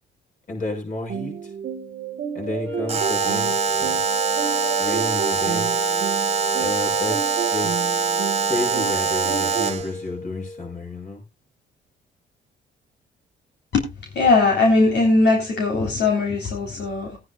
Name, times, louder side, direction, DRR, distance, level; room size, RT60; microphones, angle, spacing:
voice 1, 0.5-1.5 2.3-4.0 4.8-5.7 6.6-7.8 8.5-11.2, left 2 dB, 40° left, 6.5 m, -31 dB
sound 1, 1.1-9.8, right 8 dB, 55° right, 1.8 m, -32 dB
sound 2, 2.5-10.7, left 2 dB, 15° left, 3.8 m, -33 dB
Alarm, 2.9-9.9, right 6 dB, 30° right, 1.3 m, -24 dB
voice 2, 14.1-17.2, left 3 dB, 60° left, 3.5 m, -19 dB
19.5 x 9.6 x 2.3 m
cardioid pair, 90°, 20 cm